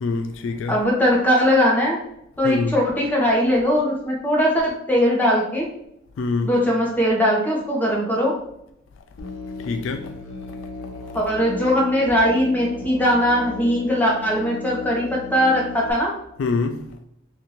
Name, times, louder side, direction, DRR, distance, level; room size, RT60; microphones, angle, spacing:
voice 1, 0.0-0.8 2.4-2.7 6.2-6.6 9.6-10.1 16.4-16.9, left 4 dB, 70° left, 0.3 m, -25 dB
voice 2, 0.7-2.0 2.4-5.7 6.4-8.3 11.1-16.1, equal, 10° left, 0.9 m, -20 dB
Musical instrument, 9.2-15.9, left 3 dB, 85° left, 0.8 m, -36 dB
2.9 x 2.6 x 4.1 m
head